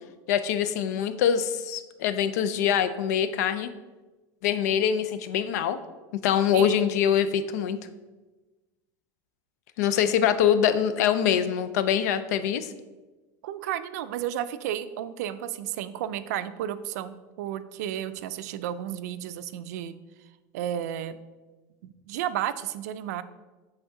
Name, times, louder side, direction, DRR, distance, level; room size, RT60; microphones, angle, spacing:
voice 1, 0.3-3.7 4.4-5.8 6.2-7.8 9.8-12.7, left 9 dB, 90° left, 12 dB, 0.5 m, -24 dB
voice 2, 13.4-20.0 20.5-21.2 21.8-23.2, right 11 dB, 85° right, 13 dB, 0.4 m, -32 dB
7.8 x 3.5 x 3.6 m, 1.2 s
supercardioid pair, 160°, 9 cm